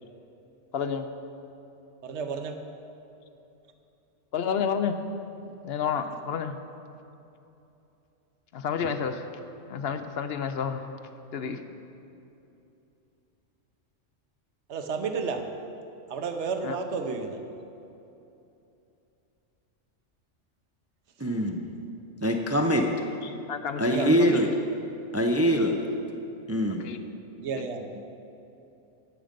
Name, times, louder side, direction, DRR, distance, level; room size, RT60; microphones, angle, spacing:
voice 1, 0.7-1.1 4.3-5.0 5.6-6.6 8.5-9.2 9.7-10.9 11.3-11.6 16.6-16.8 23.2-24.2 26.8-27.0 27.6-27.7, left 7 dB, 60° left, 9 dB, 0.8 m, -30 dB
voice 2, 2.0-2.6 14.7-15.5 16.1-17.4 23.9-24.4 27.4-27.8, right 5 dB, 65° right, 6 dB, 1.1 m, -32 dB
voice 3, 21.2-21.7 22.2-22.9 23.8-24.5 25.1-25.8 26.5-26.8, equal, 20° right, 3 dB, 0.4 m, -23 dB
16.0 x 6.5 x 5.2 m, 2.8 s
omnidirectional pair, 1.3 m